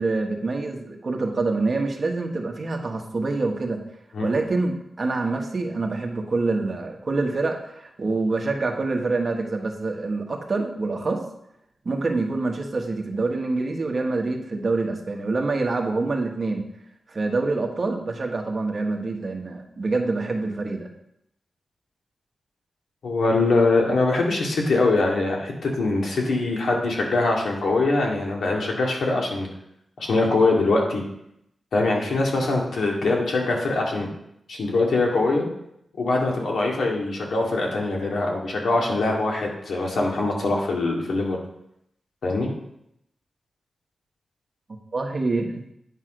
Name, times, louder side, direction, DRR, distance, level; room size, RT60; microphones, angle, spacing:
voice 1, 0.0-3.8 4.2-11.2 11.8-16.7 17.1-20.9 44.9-45.6, right 3 dB, 40° right, 2 dB, 1.2 m, -26 dB
voice 2, 23.0-29.5 30.0-31.0 31.7-34.1 34.5-35.5 36.0-41.4 42.2-42.5, left 2 dB, 90° left, -1 dB, 2.1 m, -23 dB
9.0 x 6.2 x 5.1 m, 0.78 s
wide cardioid pair, 160°, 0 cm